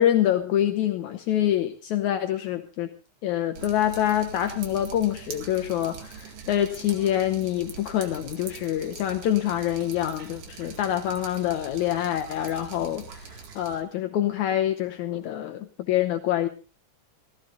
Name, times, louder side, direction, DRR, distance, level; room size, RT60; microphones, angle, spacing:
voice 1, 0.0-2.9 3.2-16.5, left 11 dB, 75° left, 7 dB, 2.2 m, -26 dB
Drip, 3.5-13.8, right 5 dB, 85° right, 3.7 m, -42 dB
18.0 x 14.5 x 3.8 m, 0.33 s
omnidirectional pair, 3.6 m